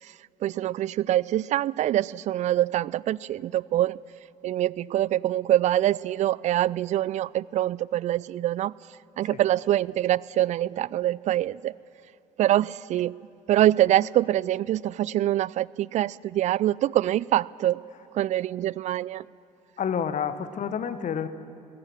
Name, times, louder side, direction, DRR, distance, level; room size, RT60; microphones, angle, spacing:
voice 1, 0.4-4.0 4.4-8.7 9.2-11.7 12.4-13.1 13.5-17.8 18.1-19.2, right 13 dB, 35° right, 24 dB, 0.4 m, -24 dB
voice 2, 19.8-21.3, left 7 dB, 40° left, 12 dB, 1.2 m, -29 dB
19.5 x 16.0 x 8.9 m, 2.8 s
figure-of-eight pair, 55°, 20 cm